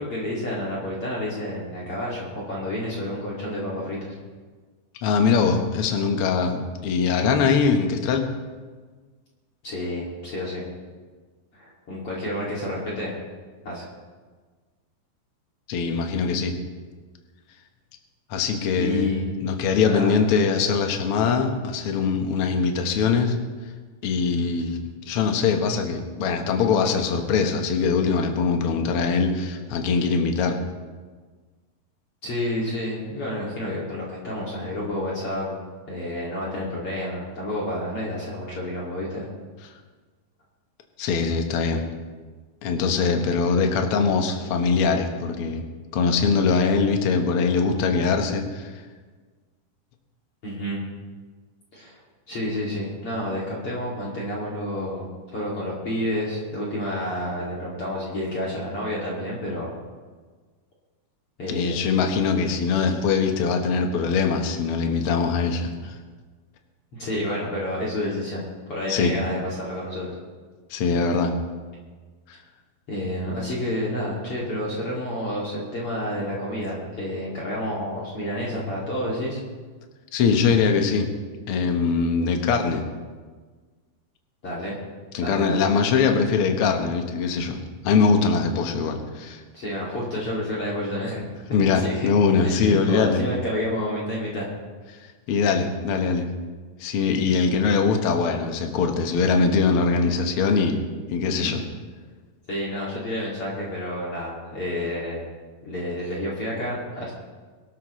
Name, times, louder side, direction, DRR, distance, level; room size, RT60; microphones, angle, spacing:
voice 1, 0.0-4.1 9.6-10.6 11.5-13.2 13.6-13.9 18.7-19.3 19.9-20.1 32.2-35.6 35.9-39.3 50.4-50.8 51.7-52.0 52.3-59.7 61.4-61.8 66.9-70.1 72.9-79.4 84.4-84.8 85.2-85.7 89.5-92.1 92.4-94.5 101.3-101.6 102.5-105.3 105.6-107.1, left 1 dB, 40° left, -5 dB, 3.2 m, -29 dB
voice 2, 5.0-8.3 15.7-16.5 18.3-19.1 19.4-23.4 24.0-30.6 41.0-41.8 42.6-45.6 45.9-48.7 61.5-65.9 68.9-69.2 70.7-71.3 80.1-81.1 81.5-82.8 85.1-87.6 87.8-89.4 91.5-93.2 95.3-96.3 96.8-100.8 101.1-101.6, left 5 dB, 70° left, 4 dB, 1.3 m, -22 dB
23.0 x 13.0 x 3.2 m, 1.4 s
omnidirectional pair, 4.3 m